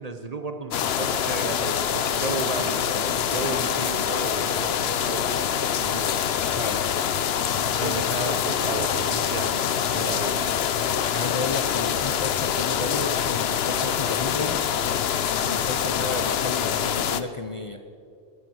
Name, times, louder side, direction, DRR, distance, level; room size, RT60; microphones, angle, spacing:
voice 1, 0.0-6.0 7.5-10.5, right 3 dB, 40° right, 7 dB, 0.8 m, -33 dB
sound 1, 0.7-17.2, left 8 dB, 70° left, 0.9 m, -25 dB
voice 2, 6.5-6.9 7.8-8.0 11.1-14.7 15.5-17.8, left 3 dB, 35° left, 7 dB, 0.6 m, -32 dB
19.5 x 9.7 x 6.3 m, 2.4 s
omnidirectional pair, 1.1 m